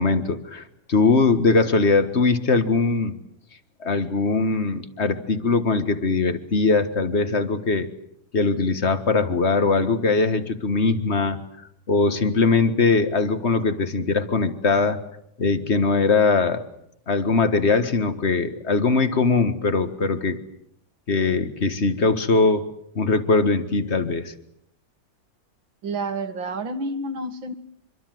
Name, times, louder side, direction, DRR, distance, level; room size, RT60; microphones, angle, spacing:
voice 1, 0.0-3.2 3.8-7.9 8.3-11.5 11.9-15.0 15.4-16.6 17.1-20.4 21.1-22.7 23.0-24.3, left 4 dB, 35° left, 10 dB, 1.8 m, -21 dB
voice 2, 25.8-27.5, right 2 dB, 85° right, 9 dB, 2.6 m, -29 dB
25.0 x 24.5 x 7.8 m, 0.74 s
omnidirectional pair, 2.0 m